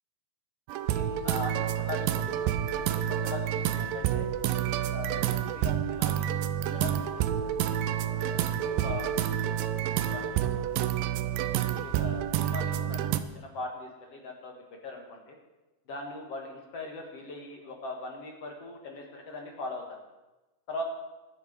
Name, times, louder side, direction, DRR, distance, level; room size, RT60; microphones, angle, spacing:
sound 1, 0.7-13.2, right 10 dB, 85° right, 2.4 m, -29 dB
voice 1, 0.9-2.5 2.9-4.3 4.9-6.4 6.7-7.5 8.0-9.1 9.5-9.7 10.1-10.8 11.7-13.0 13.3-15.4 15.9-20.0 20.7-20.8, left 2 dB, 50° left, 1 dB, 2.4 m, -40 dB
21.5 x 7.3 x 5.3 m, 1.1 s
omnidirectional pair, 4.0 m